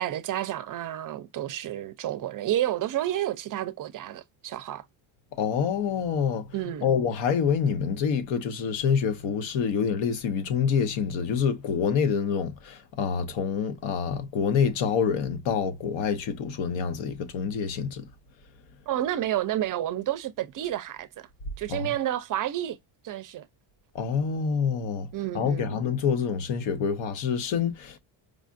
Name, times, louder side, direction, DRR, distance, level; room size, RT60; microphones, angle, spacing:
voice 1, 0.0-4.8 6.5-6.9 18.9-21.3 21.6-22.8 23.0-23.5 25.1-25.8, right 12 dB, 45° right, 0.5 m, -30 dB
voice 2, 5.3-18.1 21.7-22.0 23.9-25.1 25.3-28.0, left 6 dB, 65° left, 1.0 m, -27 dB
4.9 x 2.4 x 2.4 m
cardioid pair, 130°, 48 cm